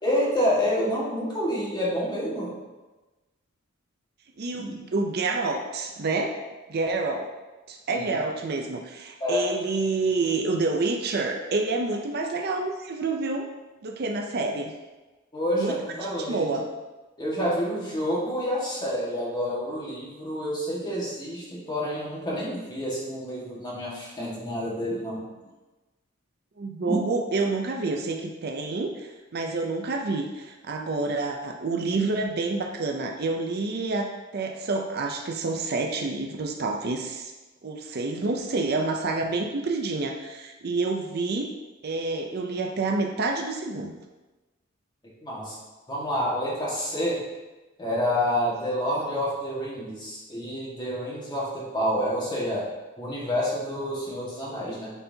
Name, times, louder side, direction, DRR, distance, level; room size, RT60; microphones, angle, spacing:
voice 1, 0.0-2.5 4.6-4.7 7.9-8.2 9.2-9.5 15.3-16.6 17.2-25.2 26.9-27.0 45.2-45.6 45.9-47.2 47.8-52.7 53.0-54.9, equal, 20° left, -6 dB, 1.7 m, -28 dB
voice 2, 4.4-6.4 6.7-7.3 7.7-13.5 13.8-14.7 15.5-15.8 16.0-16.7 26.6-37.3 37.6-41.5 41.8-43.9, right 3 dB, 50° right, 3 dB, 0.5 m, -28 dB
8.9 x 4.3 x 2.8 m, 1.2 s
head